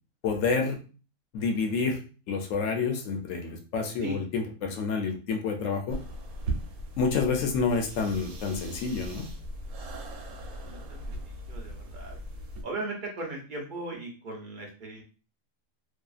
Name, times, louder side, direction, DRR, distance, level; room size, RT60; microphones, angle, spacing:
voice 1, 0.2-0.8 1.3-2.0 2.3-6.0 7.0-9.3, left 4 dB, 70° left, 3 dB, 0.8 m, -28 dB
sound 1, 5.9-12.6, right 1 dB, 90° right, 1.1 m, -38 dB
voice 2, 10.3-11.1 11.4-12.2 12.6-15.0, right 2 dB, 45° right, 0 dB, 0.6 m, -38 dB
2.6 x 2.4 x 2.3 m, 0.35 s
omnidirectional pair, 1.5 m